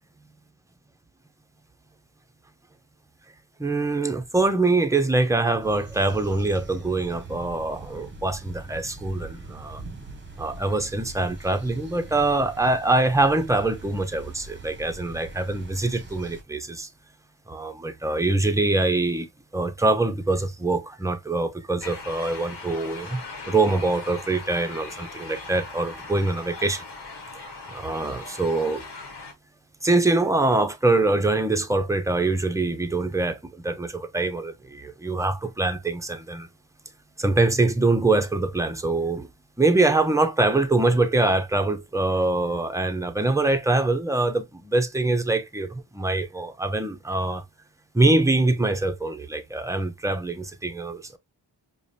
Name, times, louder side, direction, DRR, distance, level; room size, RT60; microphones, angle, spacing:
voice 1, 3.6-9.8 10.4-16.9 17.5-19.3 19.5-26.8 27.7-28.8 29.8-36.5 37.2-39.3 39.6-47.4 47.9-51.2, right 2 dB, 5° right, 0.6 m, -24 dB
sound 1, 5.6-16.4, right 3 dB, 25° right, 0.9 m, -42 dB
sound 2, 21.8-29.3, left 3 dB, 65° left, 1.2 m, -39 dB
4.8 x 2.2 x 2.7 m
cardioid pair, 55°, 44 cm